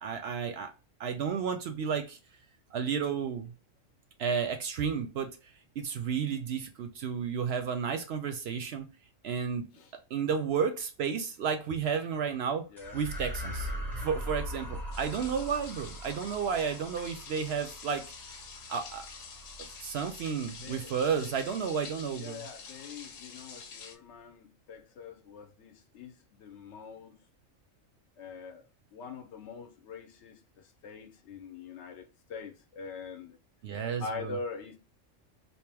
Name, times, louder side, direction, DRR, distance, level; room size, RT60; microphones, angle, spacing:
voice 1, 0.0-0.7 1.0-2.2 2.7-3.5 4.2-5.3 5.8-8.9 9.2-9.7 10.1-12.7 12.9-18.1 18.7-19.1 19.8-22.5 33.6-34.4, right 6 dB, 65° right, 7 dB, 0.7 m, -32 dB
sound 1, 12.8-21.4, equal, ahead, 0.8 m, -41 dB
sound 2, 14.9-24.0, left 5 dB, 90° left, 1.1 m, -47 dB
voice 2, 20.6-20.9 21.2-21.3 22.1-27.2 28.2-28.6 28.9-30.4 30.8-33.4 34.0-34.8, left 4 dB, 65° left, 7 dB, 0.9 m, -43 dB
3.5 x 2.7 x 3.3 m, 0.31 s
omnidirectional pair, 1.3 m